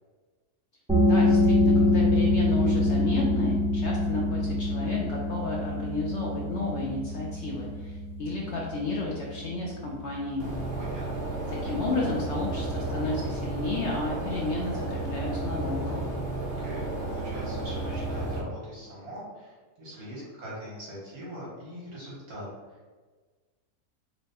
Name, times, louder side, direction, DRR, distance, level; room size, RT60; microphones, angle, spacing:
sound 1, 0.9-12.3, left 2 dB, 5° right, 0.5 m, -26 dB
voice 1, 1.0-10.5 11.5-16.0, left 2 dB, 60° left, -3 dB, 0.7 m, -32 dB
sound 2, 10.4-18.4, right 2 dB, 50° right, 0.8 m, -32 dB
voice 2, 10.8-11.3 16.4-22.9, equal, 70° right, -7 dB, 2.2 m, -42 dB
4.4 x 2.2 x 4.0 m, 1.4 s
omnidirectional pair, 1.6 m